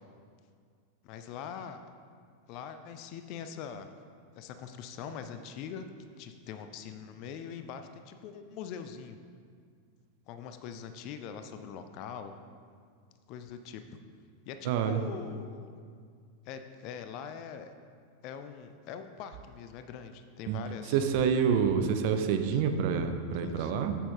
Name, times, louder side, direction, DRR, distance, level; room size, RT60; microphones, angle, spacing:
voice 1, 1.0-1.8 2.5-3.9 4.3-5.9 6.2-9.2 10.3-12.4 13.3-13.8 14.5-15.7 16.5-17.7 18.2-21.0 23.4-23.7, left 7 dB, 40° left, 8 dB, 0.5 m, -42 dB
voice 2, 14.6-15.0 20.5-20.6 20.9-24.0, right 7 dB, 50° right, 7 dB, 0.6 m, -27 dB
7.6 x 7.0 x 3.6 m, 2.1 s
figure-of-eight pair, 90°, 0 cm